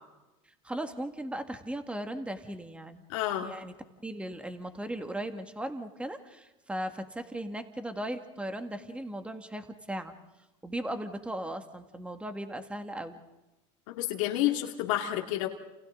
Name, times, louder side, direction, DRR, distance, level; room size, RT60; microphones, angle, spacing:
voice 1, 0.6-3.0 3.4-3.7 4.0-10.1 10.6-13.2, right 1 dB, 5° right, 7 dB, 1.9 m, -37 dB
voice 2, 3.1-3.5 13.9-15.5, left 13 dB, 80° left, 1 dB, 2.4 m, -29 dB
29.5 x 28.5 x 3.9 m, 1.0 s
supercardioid pair, 105°, 16 cm